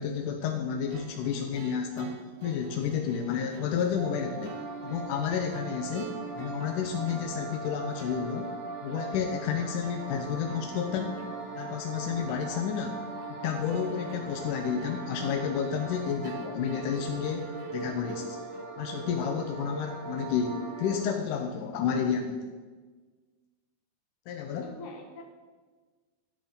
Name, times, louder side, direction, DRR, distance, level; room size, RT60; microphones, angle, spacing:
voice 1, 0.0-2.1 2.4-4.6 4.8-8.5 8.8-11.2 11.6-13.0 13.3-18.4 18.8-22.4 24.3-24.6, left 7 dB, 75° left, 3 dB, 2.0 m, -31 dB
sound 1, 0.9-18.7, right 7 dB, 75° right, 2.2 m, -48 dB
sound 2, 4.0-21.1, right 3 dB, 45° right, 2.7 m, -40 dB
voice 2, 24.6-25.2, left 2 dB, 60° left, 1 dB, 2.8 m, -44 dB
12.0 x 11.5 x 3.7 m, 1.4 s
omnidirectional pair, 4.4 m